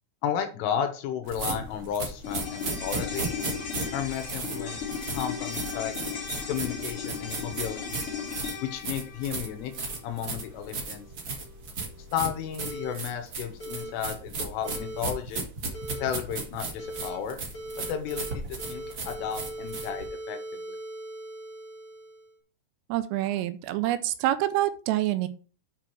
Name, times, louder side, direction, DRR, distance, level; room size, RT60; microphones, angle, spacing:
voice 1, 0.2-3.3 3.9-5.9 6.5-8.0 8.6-9.7 10.0-11.1 12.1-15.4 16.0-17.4 17.9-18.4 18.7-20.8, left 9 dB, 80° left, 7 dB, 3.3 m, -33 dB
sound 1, 1.3-20.1, right 3 dB, 60° right, 1.4 m, -35 dB
sound 2, 2.2-10.7 11.0-11.1, left 6 dB, 45° left, 2.0 m, -36 dB
sound 3, 12.6-12.9 13.6-13.9 14.6-15.0 15.7-16.1 16.8-17.2 17.5-18.3 18.6-22.3, right 1 dB, 30° left, 4.3 m, -39 dB
voice 2, 22.9-25.3, right 14 dB, 85° right, 12 dB, 3.1 m, -26 dB
9.2 x 4.6 x 4.6 m, 0.38 s
omnidirectional pair, 5.9 m